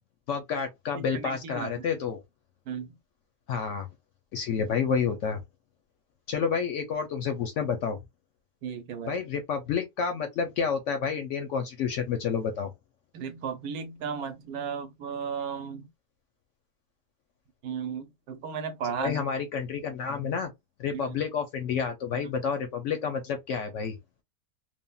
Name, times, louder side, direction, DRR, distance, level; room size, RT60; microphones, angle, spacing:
voice 1, 0.3-2.2 3.5-3.9 4.3-5.4 6.3-8.0 9.1-12.7 18.8-20.5 20.8-24.0, left 6 dB, 65° left, 0.8 m, -29 dB
voice 2, 0.9-1.9 2.7-2.9 8.6-9.2 13.1-15.9 17.6-19.1, right 6 dB, 75° right, 1.1 m, -35 dB
3.4 x 2.1 x 2.2 m
omnidirectional pair, 1.6 m